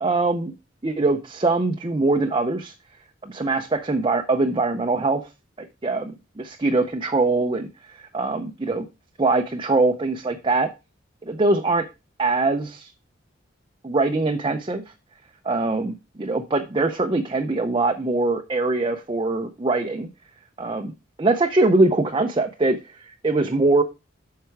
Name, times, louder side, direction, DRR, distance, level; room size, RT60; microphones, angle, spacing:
voice 1, 0.0-0.5 0.8-2.7 3.2-5.2 5.6-8.9 9.2-10.7 11.2-11.8 12.2-12.9 13.8-14.8 15.5-20.1 20.6-20.9 21.2-23.8, right 3 dB, 25° right, 4 dB, 0.6 m, -22 dB
7.8 x 5.7 x 4.6 m, 0.27 s
head